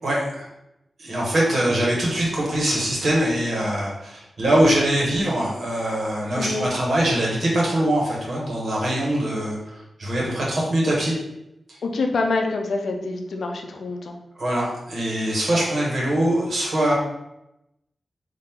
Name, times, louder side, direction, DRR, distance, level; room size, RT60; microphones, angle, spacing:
voice 1, 0.0-0.5 1.0-11.1 11.7-11.8 14.4-16.9, right 1 dB, 55° right, -4 dB, 1.5 m, -23 dB
voice 2, 6.3-6.7 11.8-14.2, left 3 dB, 75° left, 3 dB, 0.6 m, -26 dB
4.4 x 2.9 x 3.7 m, 0.87 s
wide cardioid pair, 155°, 0 cm